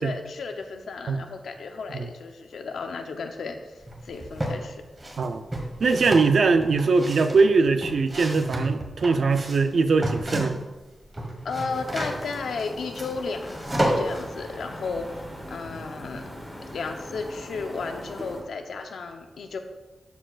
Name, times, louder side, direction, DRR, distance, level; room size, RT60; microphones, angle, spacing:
voice 1, 0.0-4.8 11.4-16.2 16.7-19.6, left 4 dB, 90° left, 5 dB, 0.7 m, -34 dB
sound 1, 3.9-4.6 5.0-10.8 11.0-14.2, right 1 dB, 25° right, 1.4 m, -30 dB
voice 2, 5.8-10.5, right 4 dB, 65° right, 9 dB, 0.5 m, -21 dB
sound 2, 11.7-18.4, equal, 5° left, 1.5 m, -40 dB
13.5 x 4.5 x 2.4 m, 1.2 s
wide cardioid pair, 100°, 0 cm